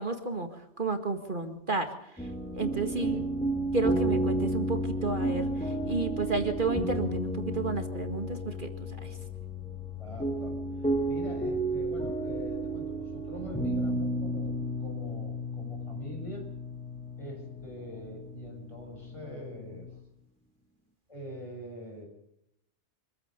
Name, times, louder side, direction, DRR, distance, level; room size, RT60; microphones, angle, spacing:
voice 1, 0.0-3.3 3.7-9.2, right 3 dB, 45° right, 6 dB, 2.0 m, -32 dB
sound 1, 2.2-20.0, right 1 dB, 5° left, 1.9 m, -32 dB
voice 2, 2.7-3.2 10.0-16.5 17.2-19.9 21.1-22.1, right 1 dB, 25° left, 1 dB, 7.4 m, -44 dB
25.5 x 15.0 x 6.8 m, 0.80 s
omnidirectional pair, 1.2 m